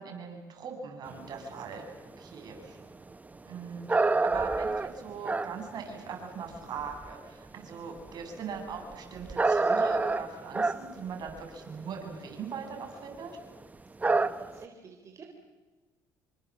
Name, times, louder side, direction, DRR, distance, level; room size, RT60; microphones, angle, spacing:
voice 1, 0.0-1.9 2.2-2.8 3.5-13.3, right 5 dB, 55° right, 3 dB, 7.3 m, -40 dB
sound 1, 1.1-7.1 7.6-12.9 13.2-13.3 13.6-13.7 14.0-14.6, right 3 dB, 20° right, 1.1 m, -29 dB
voice 2, 14.0-15.4, right 5 dB, 40° right, 2 dB, 4.1 m, -50 dB
27.0 x 25.0 x 7.5 m, 1.3 s
supercardioid pair, 85°, 8 cm